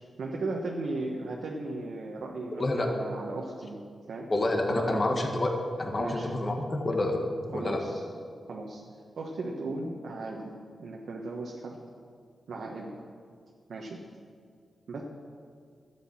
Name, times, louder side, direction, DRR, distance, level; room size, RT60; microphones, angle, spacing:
voice 1, 0.2-4.3 4.7-5.0 6.0-6.3 7.5-8.0 8.5-10.5 10.8-11.8 12.5-12.9 13.7-14.0 14.9-15.0, right 2 dB, 75° right, -1 dB, 1.3 m, -36 dB
voice 2, 2.6-2.9 4.3-7.8, left 2 dB, 40° left, 2 dB, 1.7 m, -28 dB
12.0 x 8.3 x 7.2 m, 2.2 s
cardioid pair, 65°, 0 cm